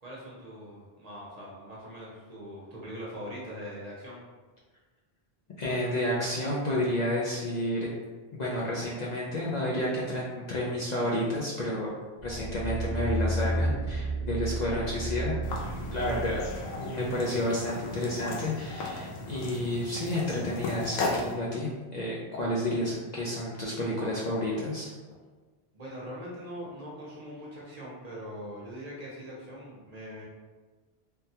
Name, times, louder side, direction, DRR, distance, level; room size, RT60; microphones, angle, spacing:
voice 1, 0.0-4.2 16.3-16.5 25.7-30.2, equal, 45° right, -5 dB, 0.8 m, -42 dB
voice 2, 5.6-7.9 8.3-11.9 12.2-15.4 15.9-16.4 16.8-24.9, left 1 dB, 55° left, -5 dB, 0.5 m, -30 dB
sound 1, 12.2-16.6 17.1-17.2, right 1 dB, 5° right, 0.8 m, -31 dB
sound 2, 15.4-21.3, left 2 dB, 80° left, 0.8 m, -36 dB
3.4 x 2.2 x 2.8 m, 1.3 s
omnidirectional pair, 1.1 m